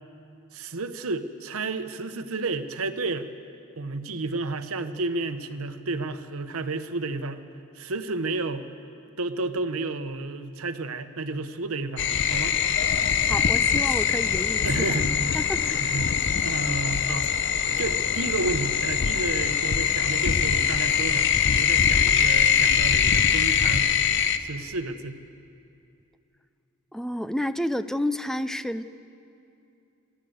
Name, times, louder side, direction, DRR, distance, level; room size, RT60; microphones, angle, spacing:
voice 1, 0.5-3.3 3.8-7.4 7.7-8.7 9.2-12.6 14.6-15.4 15.8-17.3 17.8-21.3 21.6-23.9 24.4-25.2, right 3 dB, 85° right, 10 dB, 1.0 m, -31 dB
sound 1, 12.0-24.4, left 8 dB, 60° left, 0.8 m, -23 dB
voice 2, 13.3-14.7 15.3-16.0 26.9-28.8, left 1 dB, ahead, 12 dB, 0.5 m, -30 dB
28.0 x 12.5 x 7.9 m, 2.6 s
head